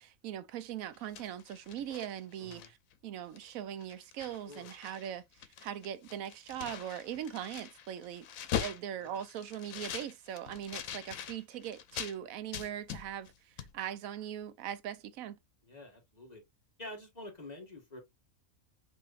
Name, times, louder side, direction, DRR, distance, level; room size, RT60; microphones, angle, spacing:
voice 1, 0.0-2.8 3.0-5.2 5.6-8.3 8.6-13.3 13.6-15.4, right 10 dB, 90° right, 1.0 m, -40 dB
sound 1, 0.9-2.9 3.4-3.5 3.8-5.1 5.3-12.2 12.5-13.3 13.6-13.7, left 9 dB, 85° left, 1.1 m, -42 dB
voice 2, 2.4-2.7 4.5-4.7 8.6-9.1 15.6-16.4 16.8-18.0, left 1 dB, 30° left, 1.5 m, -48 dB
6.0 x 2.8 x 2.4 m
omnidirectional pair, 1.4 m